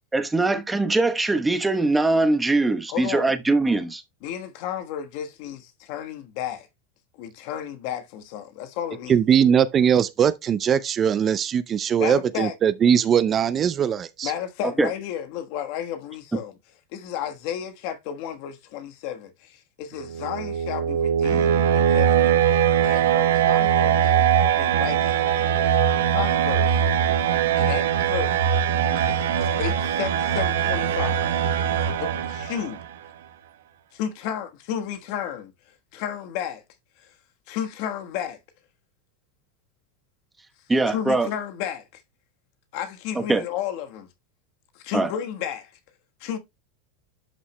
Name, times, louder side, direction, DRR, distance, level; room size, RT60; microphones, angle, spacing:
voice 1, 0.1-4.0 14.8-14.9 40.7-41.3 43.1-43.4 44.9-45.1, right 2 dB, 10° right, 1.0 m, -22 dB
voice 2, 2.9-3.3 4.2-6.7 7.2-9.2 12.0-12.5 14.2-16.5 16.9-22.6 22.8-24.1 24.6-25.7 26.1-26.8 27.6-28.6 28.9-31.3 32.0-32.9 33.9-35.5 35.9-36.6 37.0-37.1 37.5-38.4 40.9-42.0 42.7-44.1 44.7-45.7 46.2-46.4, left 9 dB, 60° left, 1.3 m, -32 dB
voice 3, 9.1-14.3, right 8 dB, 30° right, 0.5 m, -20 dB
sound 1, 20.0-32.9, right 9 dB, 85° right, 1.1 m, -21 dB
11.0 x 5.8 x 2.2 m
supercardioid pair, 130°, 0 cm